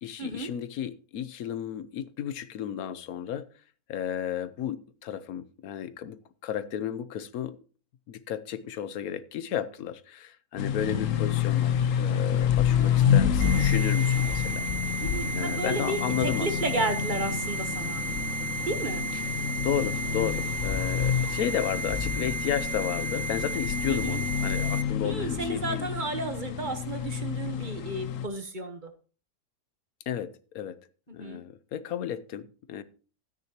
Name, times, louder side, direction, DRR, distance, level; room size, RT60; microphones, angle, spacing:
voice 1, 0.0-3.5 3.9-7.6 8.1-15.0 15.3-16.8 19.6-25.9 30.1-30.8 31.1-32.8, left 9 dB, 85° left, 1.2 m, -33 dB
sound 1, 10.6-28.3, left 8 dB, 65° left, 1.1 m, -28 dB
voice 2, 12.7-13.1 15.0-18.0 18.7-19.0 21.2-21.5 23.9-24.2 25.0-28.9 31.2-31.4, right 2 dB, 40° right, 1.1 m, -33 dB
sound 2, 13.4-24.8, right 4 dB, 80° right, 1.6 m, -34 dB
13.0 x 9.7 x 2.9 m
omnidirectional pair, 1.5 m